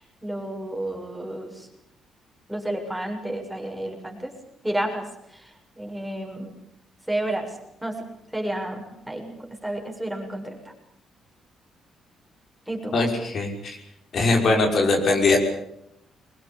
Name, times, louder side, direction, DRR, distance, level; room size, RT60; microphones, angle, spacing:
voice 1, 0.2-1.7 2.5-4.3 4.6-5.0 5.8-6.5 7.1-7.5 7.8-8.0 8.3-9.3 9.6-10.7 12.7-12.9, right 1 dB, 5° right, 2 dB, 6.9 m, -30 dB
voice 2, 12.9-13.8 14.1-15.4, left 3 dB, 55° left, 2 dB, 5.8 m, -21 dB
23.0 x 20.5 x 8.7 m, 0.76 s
cardioid pair, 90°, 0 cm